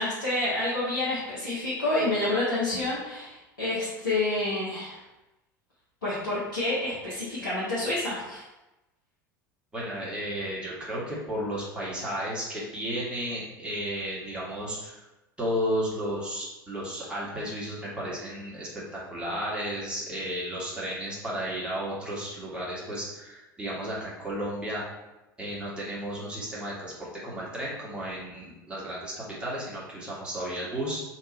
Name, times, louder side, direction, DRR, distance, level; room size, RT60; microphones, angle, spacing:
voice 1, 0.0-5.0 6.0-8.4, left 2 dB, 75° left, -11 dB, 1.2 m, -28 dB
voice 2, 9.7-15.0 15.4-24.8 25.4-26.9 27.2-31.0, equal, 10° right, -7 dB, 1.4 m, -33 dB
3.0 x 3.0 x 4.0 m, 1.0 s
figure-of-eight pair, 70°, 11 cm